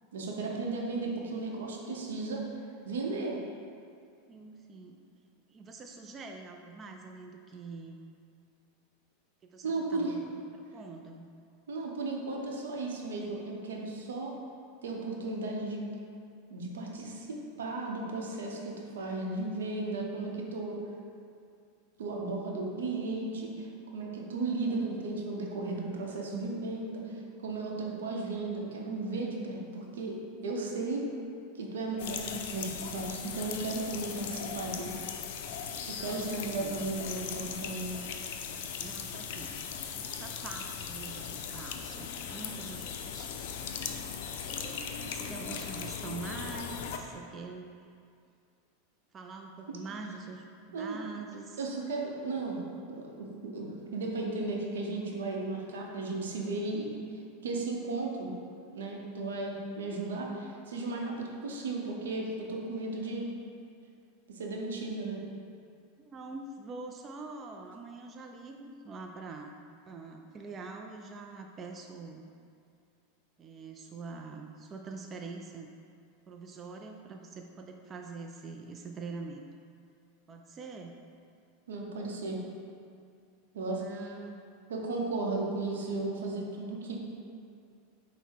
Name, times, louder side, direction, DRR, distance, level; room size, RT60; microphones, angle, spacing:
voice 1, 0.1-2.4 2.8-3.4 9.6-10.1 11.7-14.3 14.8-15.8 16.5-20.8 22.0-27.1 27.4-30.2 30.4-31.0 31.6-35.0 35.9-37.9 50.7-51.0 51.6-52.6 52.9-53.7 53.9-57.0 57.4-58.3 58.7-63.3 64.3-65.2 81.7-82.4 83.5-84.1 84.7-87.0, right 3 dB, 85° right, -1 dB, 0.7 m, -35 dB
voice 2, 4.3-5.0 5.5-8.0 9.4-11.3 35.9-36.9 38.8-39.7 39.9-43.4 44.6-47.9 49.1-51.7 66.0-69.6 69.9-72.2 73.4-75.7 76.3-79.4 80.3-81.0 83.7-84.5, right 4 dB, 30° right, 3 dB, 0.3 m, -45 dB
sound 1, 32.0-47.0, left 7 dB, 65° left, 0.4 m, -39 dB
5.6 x 2.1 x 4.4 m, 2.4 s
hypercardioid pair, 105°, 0 cm